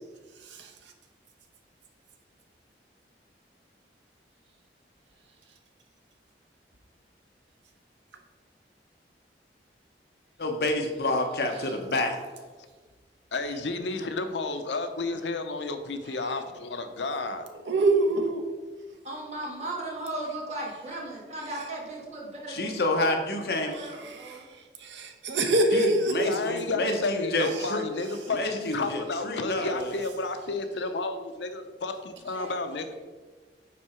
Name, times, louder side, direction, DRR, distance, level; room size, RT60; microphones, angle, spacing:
voice 1, 10.4-12.2 22.5-23.8 25.7-27.8 28.3-30.0, left 2 dB, 65° left, 4 dB, 1.0 m, -28 dB
voice 2, 13.3-17.5 26.1-32.9, left 3 dB, 85° left, 8 dB, 0.7 m, -32 dB
voice 3, 17.7-18.4 24.0-24.4 24.8-26.4 27.6-27.7, right 2 dB, 90° right, 4 dB, 0.9 m, -25 dB
voice 4, 19.0-22.7 23.7-24.4 32.3-32.5, right 1 dB, 40° right, -3 dB, 1.8 m, -36 dB
9.3 x 3.8 x 4.4 m, 1.4 s
head